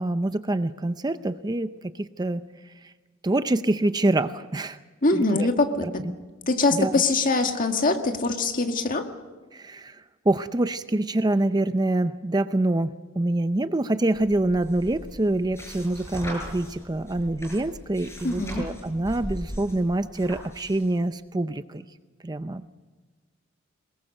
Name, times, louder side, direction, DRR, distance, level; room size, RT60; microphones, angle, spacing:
voice 1, 0.0-2.4 2.8-2.9 3.2-4.8 5.1-5.5 5.8-5.9 6.7-7.0 9.5-21.8 22.2-22.7, right 2 dB, 20° right, 11 dB, 0.6 m, -26 dB
voice 2, 5.0-6.0 6.5-9.1 18.2-18.6, left 3 dB, 45° left, 5 dB, 1.9 m, -23 dB
sound 1, 14.1-20.9, equal, 15° left, 6.2 m, -39 dB
22.5 x 21.5 x 6.6 m, 1.3 s
head